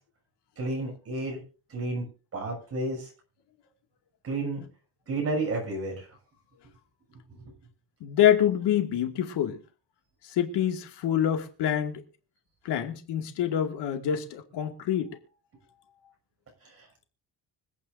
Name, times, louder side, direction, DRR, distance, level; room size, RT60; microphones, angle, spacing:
voice 1, 0.6-1.4 1.7-2.0 2.3-3.1 4.2-4.7 5.1-6.0, right 2 dB, 35° right, 6.5 m, -31 dB
voice 2, 8.0-9.6 10.2-12.0 12.6-15.1, left 10 dB, 80° left, 2.3 m, -26 dB
25.0 x 9.0 x 2.7 m
cardioid pair, 165°, 41 cm